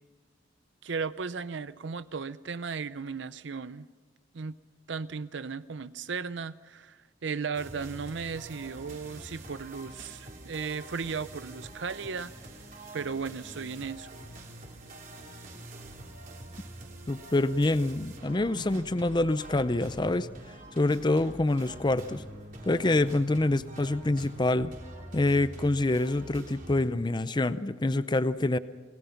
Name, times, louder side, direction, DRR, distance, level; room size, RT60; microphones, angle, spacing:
voice 1, 0.8-3.9 4.3-4.5 4.9-12.3 12.9-14.1, right 5 dB, 70° right, 14 dB, 0.6 m, -36 dB
sound 1, 7.5-26.8, right 1 dB, 45° right, 3.6 m, -46 dB
voice 2, 17.1-20.3 20.8-22.2 22.7-24.7 25.1-28.6, left 2 dB, 25° left, 14 dB, 0.6 m, -26 dB
28.0 x 18.5 x 5.8 m, 1.3 s
head